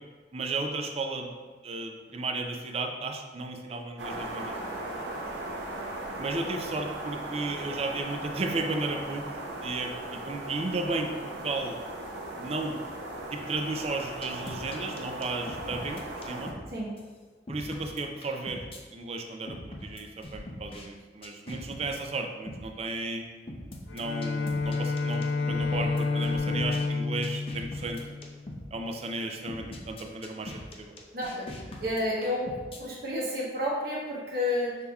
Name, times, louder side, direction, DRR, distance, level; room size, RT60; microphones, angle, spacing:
voice 1, 0.3-1.3 1.6-4.5 6.2-9.3 9.6-11.8 12.4-12.8 13.3-16.5 17.5-18.6 18.9-23.2 23.9-28.0 28.7-30.9, right 3 dB, 35° right, 4 dB, 0.4 m, -34 dB
sound 1, 4.0-16.5, right 1 dB, 85° right, 0.7 m, -38 dB
sound 2, 14.2-16.7 17.0-17.1 17.5-18.8 19.5-20.9 21.2-22.0 22.5-22.7 23.5-26.9 27.2-28.7 29.0-29.1 29.5-32.8, left 1 dB, 30° left, 0.5 m, -42 dB
Bowed string instrument, 23.9-28.8, left 3 dB, 85° left, 0.3 m, -30 dB
voice 2, 31.1-32.5 32.8-34.8, left 1 dB, 60° right, -5 dB, 0.9 m, -30 dB
5.5 x 3.4 x 2.3 m, 1.4 s
head